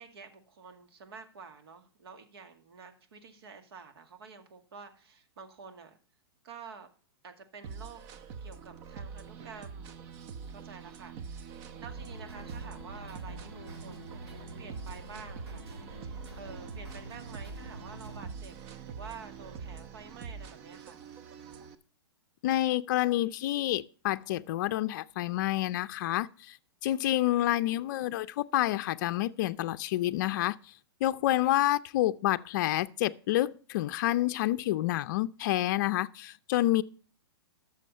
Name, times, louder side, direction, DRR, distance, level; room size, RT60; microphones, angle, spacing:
voice 1, 0.0-6.0 6.4-6.9 7.2-8.0 8.4-15.6 16.0-18.5 18.8-21.0, right 5 dB, 70° right, 2.2 m, -49 dB
sound 1, 7.6-21.7, right 6 dB, 35° right, 0.9 m, -45 dB
sound 2, 11.9-18.3, right 1 dB, 85° right, 3.8 m, -46 dB
voice 2, 22.4-26.6 26.8-30.6 31.0-36.8, left 14 dB, 45° left, 0.5 m, -28 dB
13.0 x 6.4 x 5.4 m
hypercardioid pair, 140°, 13 cm